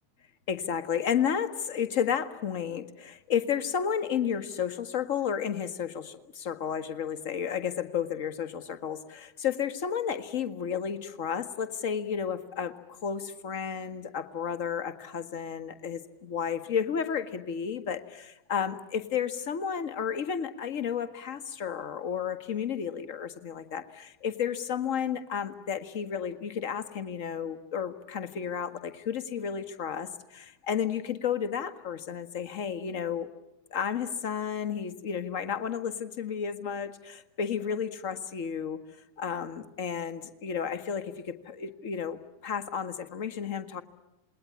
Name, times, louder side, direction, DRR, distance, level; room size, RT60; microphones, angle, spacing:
voice 1, 0.5-33.3 33.7-38.8 39.2-43.8, left 7 dB, 50° left, 11 dB, 1.5 m, -32 dB
28.0 x 20.5 x 9.9 m, 0.95 s
figure-of-eight pair, 90°, 0 cm